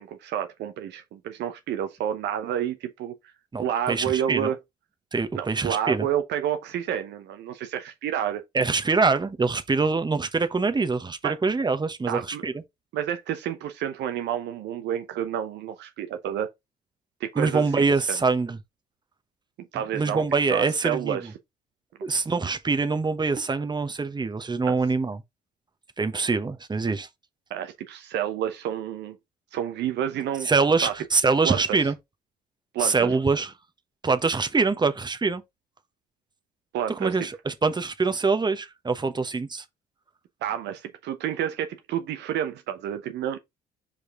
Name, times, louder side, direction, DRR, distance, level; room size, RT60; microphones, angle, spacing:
voice 1, 0.0-3.1 3.6-4.6 5.3-8.4 11.2-11.4 12.1-12.4 12.9-16.5 17.2-18.2 19.7-20.2 20.5-21.3 24.7-24.8 27.5-29.2 29.5-30.5 30.8-30.9 31.4-31.8 32.7-33.1 36.7-37.1 40.4-43.4, right 10 dB, 60° right, 0.8 m, -29 dB
voice 2, 3.5-4.5 5.1-6.1 8.5-12.5 17.3-18.6 19.9-21.3 22.0-25.2 26.0-27.1 30.4-31.9 32.8-33.5 34.0-35.4 36.9-39.6, right 4 dB, 20° right, 1.2 m, -24 dB
5.2 x 4.9 x 3.8 m
hypercardioid pair, 50°, 20 cm